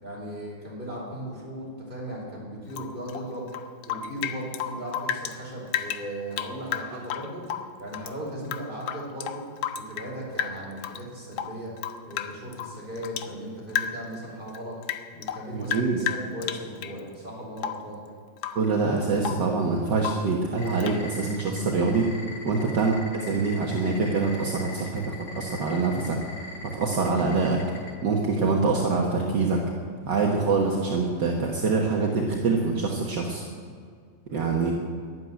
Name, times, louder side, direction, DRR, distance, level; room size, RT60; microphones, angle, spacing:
voice 1, 0.0-3.5 3.9-9.4 9.8-11.7 12.0-14.7 15.1-18.0 22.5-22.7 30.0-30.2 34.3-34.7, right 1 dB, 25° right, -4 dB, 4.9 m, -37 dB
Rain / Drip, 2.7-5.4 5.7-8.1 8.4-10.1 10.4-11.0 11.3-13.3 13.7-14.2 14.5-17.0 17.6-17.9 18.4-18.7 19.0-19.5 20.0-20.3 20.8-21.0, left 9 dB, 75° left, 1.5 m, -33 dB
voice 2, 15.5-16.0 18.5-22.1 22.5-22.9 23.2-26.2 26.7-27.6 28.0-29.6 30.1-33.4 34.3-34.7, right 4 dB, 60° right, -1 dB, 1.9 m, -25 dB
sound 1, 20.6-27.9, left 2 dB, 50° left, 4.0 m, -40 dB
12.5 x 11.5 x 9.2 m, 2.1 s
omnidirectional pair, 2.2 m